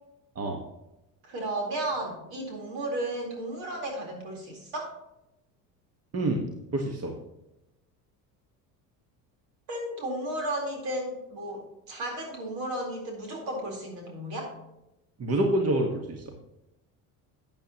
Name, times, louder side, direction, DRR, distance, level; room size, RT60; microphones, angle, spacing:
voice 1, 1.2-4.9 9.7-14.5, right 1 dB, 65° right, 0 dB, 4.1 m, -34 dB
voice 2, 6.7-7.1 15.2-16.2, right 1 dB, 30° right, 3 dB, 1.5 m, -27 dB
12.5 x 8.9 x 3.0 m, 0.92 s
hypercardioid pair, 70°, 49 cm